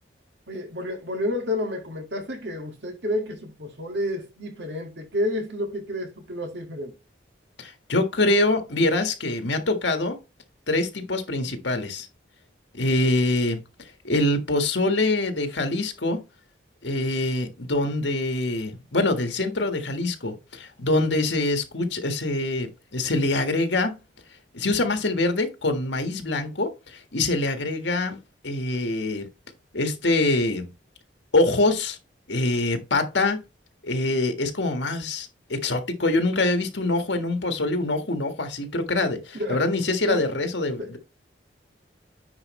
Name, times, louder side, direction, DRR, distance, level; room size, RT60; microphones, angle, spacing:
voice 1, 0.5-7.0 39.4-39.6 40.0-40.3 40.8-40.9, left 1 dB, 75° right, 2.0 m, -30 dB
voice 2, 7.6-10.2 10.7-12.1 12.7-13.6 14.0-16.2 16.8-24.0 24.5-28.2 28.4-29.3 29.7-30.7 31.3-32.0 32.3-33.4 33.8-41.0, left 2 dB, 80° left, 1.6 m, -24 dB
9.8 x 4.8 x 3.2 m
head